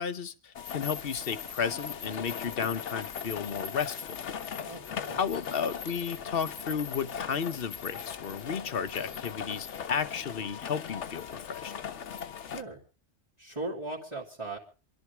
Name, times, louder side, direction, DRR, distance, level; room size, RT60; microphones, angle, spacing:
voice 1, 0.0-4.1 5.2-11.7, left 7 dB, 55° left, 1.1 m, -33 dB
sound 1, 0.5-12.6, left 7 dB, 90° left, 1.2 m, -39 dB
voice 2, 4.6-5.2 12.4-12.8 13.4-14.6, right 2 dB, 25° right, 2.7 m, -38 dB
27.0 x 12.0 x 3.4 m
omnidirectional pair, 1.2 m